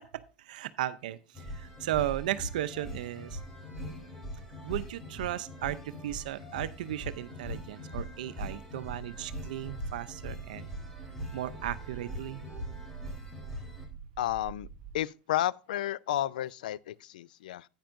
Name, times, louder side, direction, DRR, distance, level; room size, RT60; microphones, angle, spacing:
voice 1, 0.0-3.4 4.6-10.7 11.3-12.4, right 13 dB, 80° right, 0.6 m, -35 dB
sound 1, 1.3-13.9, equal, 10° left, 3.5 m, -41 dB
sound 2, 8.8-15.0, right 8 dB, 55° right, 1.1 m, -47 dB
voice 2, 14.2-14.7 14.9-17.7, left 13 dB, 85° left, 0.3 m, -32 dB
10.0 x 8.9 x 2.5 m
supercardioid pair, 125°, 4 cm